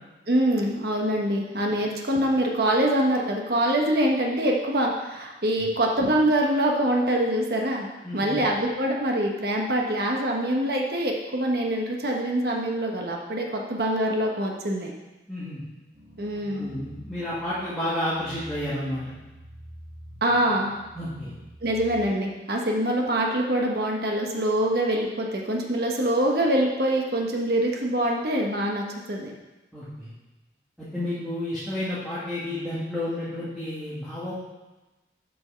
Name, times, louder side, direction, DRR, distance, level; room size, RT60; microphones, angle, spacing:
voice 1, 0.3-7.9 8.1-14.9 16.2-16.7 20.2-20.7 21.6-29.3, right 1 dB, 60° right, 0 dB, 1.2 m, -24 dB
voice 2, 8.0-8.4 15.3-15.6 16.5-19.0 20.9-21.3 29.7-30.1 30.8-34.3, left 1 dB, ahead, -13 dB, 2.2 m, -31 dB
sound 1, 15.9-22.1, right 1 dB, 40° right, 2.2 m, -47 dB
7.8 x 6.2 x 5.8 m, 1.1 s
head